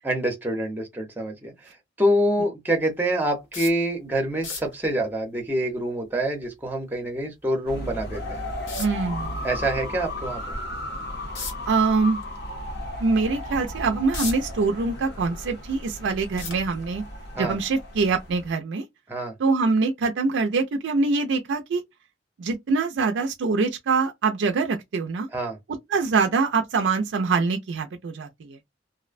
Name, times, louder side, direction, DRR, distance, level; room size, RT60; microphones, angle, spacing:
voice 1, 0.0-8.4 9.4-10.6 17.4-17.6 19.1-19.3 25.3-25.6, right 1 dB, 10° right, 0.6 m, -26 dB
sound 1, 3.5-3.9 4.3-4.8 7.5-7.6 8.7-9.1 11.3-11.7 12.2-12.4 12.9-13.0 13.7-14.6 15.0-15.7 16.4-17.1 18.0-18.2 18.5-18.6, left 4 dB, 85° left, 1.0 m, -34 dB
sound 2, 7.7-18.5, left 1 dB, 60° left, 0.6 m, -35 dB
voice 2, 8.8-9.4 11.7-12.2 13.0-17.0 17.4-18.8 19.4-21.8 22.4-25.3 25.9-28.6, right 4 dB, 80° right, 0.4 m, -24 dB
2.4 x 2.1 x 2.5 m
head